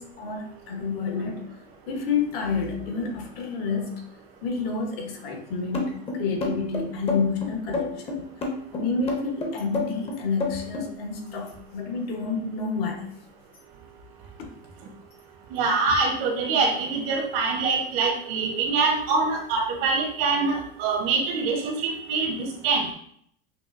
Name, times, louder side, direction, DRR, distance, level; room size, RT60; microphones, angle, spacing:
voice 1, 0.0-1.5 1.9-4.0 4.4-8.3 8.7-13.0, left 4 dB, 65° left, 3 dB, 1.1 m, -29 dB
sound 1, 5.7-10.9, left 3 dB, 20° left, 0.7 m, -29 dB
voice 2, 15.5-22.9, right 4 dB, 65° right, 1 dB, 1.2 m, -24 dB
5.9 x 2.4 x 2.5 m, 0.66 s
supercardioid pair, 135°, 31 cm